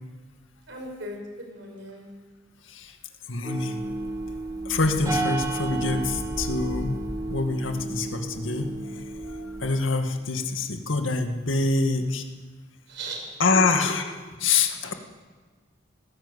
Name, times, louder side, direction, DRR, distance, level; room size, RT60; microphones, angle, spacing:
voice 1, 0.7-2.1 12.9-13.3, right 1 dB, 70° right, 0 dB, 6.2 m, -38 dB
voice 2, 3.3-3.8 4.7-7.0 7.3-8.7 9.3-12.2 13.4-14.0 14.4-14.9, left 3 dB, 90° left, 5 dB, 2.1 m, -25 dB
sound 1, 3.4-9.7, right 2 dB, 20° right, 1.7 m, -32 dB
19.0 x 16.5 x 8.2 m, 1.4 s
head